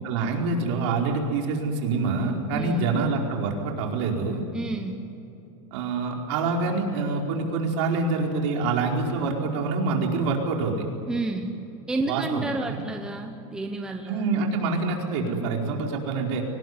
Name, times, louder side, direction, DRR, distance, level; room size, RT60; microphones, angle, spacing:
voice 1, 0.0-4.4 5.7-10.9 12.1-12.8 14.0-16.4, right 3 dB, 55° right, 0 dB, 4.7 m, -26 dB
voice 2, 2.5-2.9 4.5-5.0 11.1-11.5 11.9-14.2, right 2 dB, 5° right, 4 dB, 1.0 m, -30 dB
24.5 x 19.5 x 9.7 m, 2.8 s
supercardioid pair, 165°, 17 cm